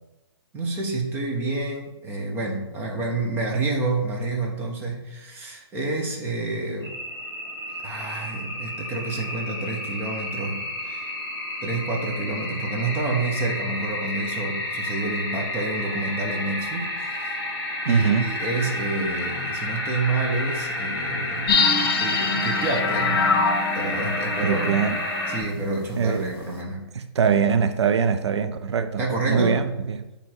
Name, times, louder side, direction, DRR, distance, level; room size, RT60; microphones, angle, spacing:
voice 1, 0.5-6.9 7.8-10.6 10.8-11.1 11.6-17.4 17.9-23.2 23.7-24.8 25.3-26.8 29.0-29.7, right 3 dB, 15° right, 1.0 m, -28 dB
sound 1, 6.8-25.4, left 1 dB, 15° left, 2.3 m, -30 dB
voice 2, 17.9-18.3 24.4-25.0 26.0-26.3 27.0-30.0, right 6 dB, 90° right, 0.5 m, -22 dB
sound 2, 21.5-25.9 26.2-26.3, left 4 dB, 55° left, 0.8 m, -25 dB
7.3 x 3.5 x 4.5 m
hypercardioid pair, 150°, 14 cm